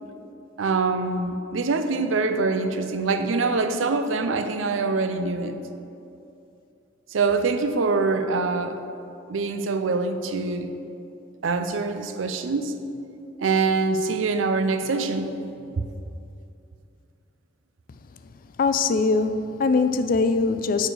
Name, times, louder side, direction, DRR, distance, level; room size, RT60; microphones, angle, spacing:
voice 1, 0.6-5.6 7.1-8.8 9.3-10.7 11.4-12.7 13.4-15.3 15.7-15.8, right 4 dB, 80° right, 0.5 m, -24 dB
voice 2, 18.6-20.9, left 4 dB, 45° left, 0.3 m, -22 dB
6.6 x 4.7 x 6.3 m
head